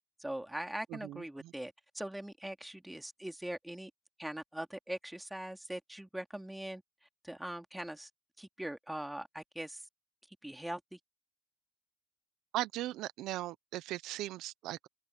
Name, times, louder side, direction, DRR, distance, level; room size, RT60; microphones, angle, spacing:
voice 1, 0.2-3.9 4.2-6.8 7.2-8.1 8.4-9.8 10.4-11.0, right 1 dB, 10° right, 3.0 m, -41 dB
voice 2, 0.9-1.5 12.5-14.9, right 16 dB, 80° right, 0.8 m, -38 dB
open air
hypercardioid pair, 50°, 0 cm